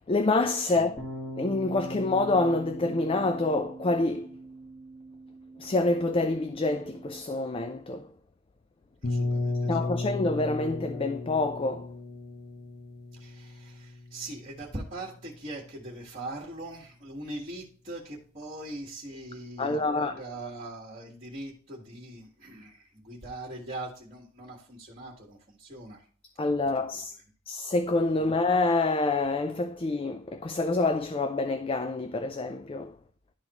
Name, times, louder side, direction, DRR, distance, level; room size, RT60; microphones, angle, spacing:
voice 1, 0.1-1.0 1.4-4.3 5.6-8.1 9.7-11.9 19.6-20.2 26.4-27.1 27.5-33.0, left 2 dB, 25° left, 0.4 m, -27 dB
sound 1, 1.0-7.2, right 1 dB, ahead, 1.8 m, -42 dB
sound 2, 9.0-14.8, left 2 dB, 50° left, 1.1 m, -34 dB
voice 2, 9.0-9.9 13.1-26.0 28.1-28.3, right 2 dB, 35° right, 1.7 m, -41 dB
11.5 x 4.0 x 2.9 m
head